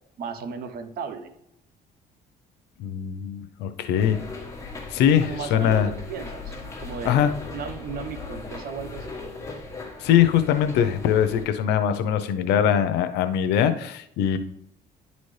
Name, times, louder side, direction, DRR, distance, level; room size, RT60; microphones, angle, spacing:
voice 1, 0.2-1.3 5.2-9.2, right 6 dB, 65° right, 9 dB, 0.9 m, -36 dB
voice 2, 2.8-4.2 4.9-5.9 7.0-7.3 10.0-14.4, left 9 dB, 85° left, 9 dB, 0.6 m, -22 dB
sound 1, 4.0-11.5, left 3 dB, 15° left, 1.4 m, -38 dB
10.5 x 4.1 x 3.2 m, 0.79 s
cardioid pair, 110°, 17 cm